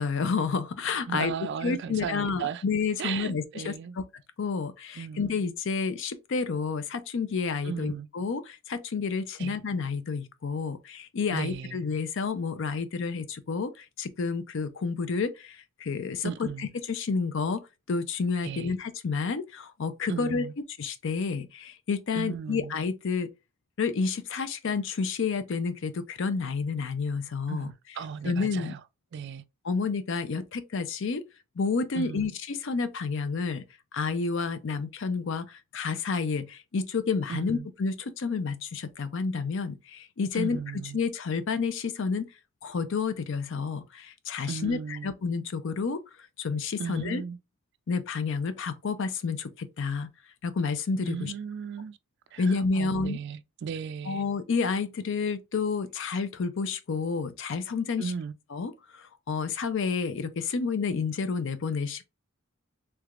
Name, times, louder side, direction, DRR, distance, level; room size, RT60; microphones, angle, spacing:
voice 1, 0.0-1.3 1.6-4.0 4.4-17.6 17.9-20.5 20.8-23.3 23.8-27.7 28.2-28.7 29.6-31.3 31.6-33.6 33.9-40.6 40.9-42.3 42.6-46.0 46.4-47.2 47.9-50.1 50.4-51.3 52.4-53.2 54.1-58.1 58.5-62.0, left 5 dB, 60° left, 0.5 m, -30 dB
voice 2, 1.1-2.6 3.0-4.0 5.0-5.4 7.6-8.1 9.4-9.6 11.3-11.8 16.2-16.7 18.4-18.7 20.1-20.5 22.1-22.8 27.5-28.8 29.1-29.4 32.0-32.3 37.3-37.7 40.3-41.0 44.5-45.1 46.8-47.4 51.1-52.0 52.3-54.2 58.0-58.3, right 6 dB, 55° right, 0.3 m, -36 dB
3.3 x 3.2 x 2.4 m
head